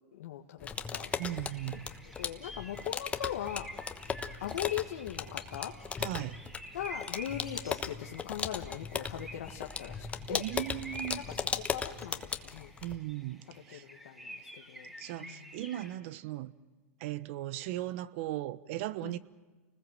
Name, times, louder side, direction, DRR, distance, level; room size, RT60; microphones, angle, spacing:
voice 1, 0.0-1.1 1.7-1.8 2.2-3.7 4.4-5.7 6.7-10.4 11.3-11.4 11.7-12.7 13.7-14.9 15.2-15.5 19.0-19.2, left 11 dB, 80° left, 1.6 m, -40 dB
sound 1, 0.6-13.0, left 6 dB, 15° left, 1.2 m, -38 dB
sound 2, 1.0-16.0, right 1 dB, 5° right, 3.6 m, -49 dB
voice 2, 1.2-1.9 6.0-6.4 10.3-11.2 12.8-13.8 15.0-16.5 17.0-19.2, right 14 dB, 55° right, 1.1 m, -37 dB
29.5 x 20.0 x 7.6 m
supercardioid pair, 135°, 8 cm